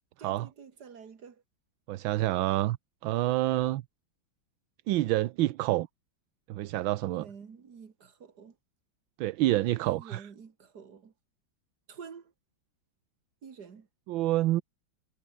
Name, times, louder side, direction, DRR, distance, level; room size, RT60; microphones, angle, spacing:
voice 1, 0.2-1.4 7.1-8.6 9.8-11.1 11.9-12.3 13.4-13.9, right 6 dB, 55° right, 2.5 m, -48 dB
voice 2, 1.9-2.8 3.0-3.8 4.9-5.9 6.5-7.3 9.2-10.2 14.1-14.6, right 16 dB, 80° right, 1.4 m, -27 dB
omnidirectional pair, 2.2 m